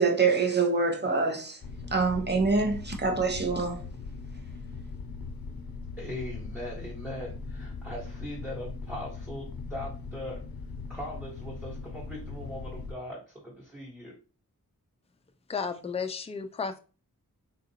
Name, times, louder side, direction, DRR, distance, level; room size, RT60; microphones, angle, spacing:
voice 1, 0.0-1.6 1.9-3.8, right 4 dB, 30° right, 0.7 m, -25 dB
sound 1, 1.6-12.9, left 4 dB, 75° left, 0.5 m, -40 dB
voice 2, 6.0-10.4 10.9-14.1, left 1 dB, ahead, 1.2 m, -40 dB
voice 3, 15.5-16.8, left 5 dB, 20° left, 0.3 m, -33 dB
3.7 x 2.5 x 2.8 m
wide cardioid pair, 70°, 35 cm